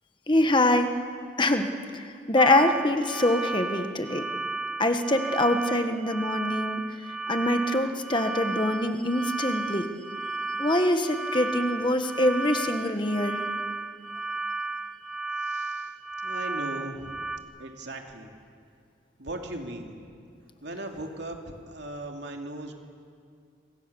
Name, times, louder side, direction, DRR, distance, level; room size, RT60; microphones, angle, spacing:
voice 1, 0.3-1.0 1.4-4.3 4.8-6.8 7.3-9.9 10.6-13.4, left 1 dB, 25° left, 7 dB, 1.4 m, -24 dB
sound 1, 2.4-17.4, right 3 dB, 5° right, 1.1 m, -34 dB
voice 2, 15.4-15.9 16.2-17.2 17.6-18.4 19.2-20.2 20.6-22.7, right 1 dB, 65° right, 3 dB, 2.8 m, -38 dB
27.5 x 23.5 x 7.0 m, 2.3 s
head